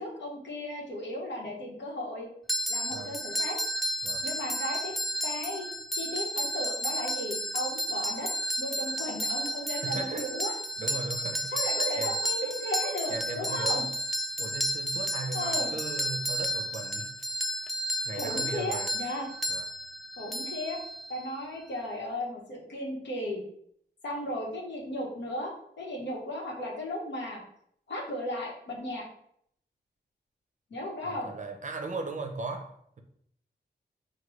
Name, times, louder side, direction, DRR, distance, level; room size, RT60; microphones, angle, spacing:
voice 1, 0.0-2.3 2.7-3.6 4.2-4.9 5.2-5.7 5.9-8.3 8.6-10.5 11.5-13.9 15.3-15.7 18.1-19.3 20.2-20.8 21.1-23.4 24.0-27.4 27.9-29.0 30.7-31.3, left 1 dB, 75° left, -1 dB, 1.1 m, -35 dB
sound 1, 2.5-21.3, equal, ahead, 0.3 m, -32 dB
voice 2, 9.7-10.3 10.8-11.5 12.0-12.2 13.1-13.9 14.4-17.1 18.0-18.9 19.5-19.7 31.0-33.0, right 3 dB, 45° right, 4 dB, 0.6 m, -37 dB
4.6 x 2.3 x 3.1 m, 0.69 s
wide cardioid pair, 80°, 18 cm